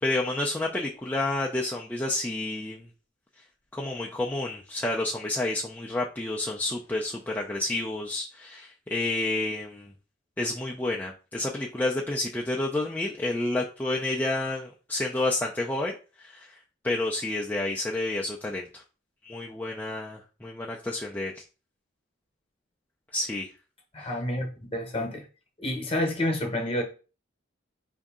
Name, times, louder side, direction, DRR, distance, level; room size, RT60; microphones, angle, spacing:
voice 1, 0.0-2.9 3.7-9.9 10.4-16.5 16.8-18.8 19.2-21.4 23.1-23.5 24.0-24.1, left 2 dB, 10° left, 0.4 m, -30 dB
voice 2, 23.9-25.3 25.6-26.8, left 1 dB, 30° left, 1.0 m, -29 dB
4.9 x 2.7 x 3.6 m
head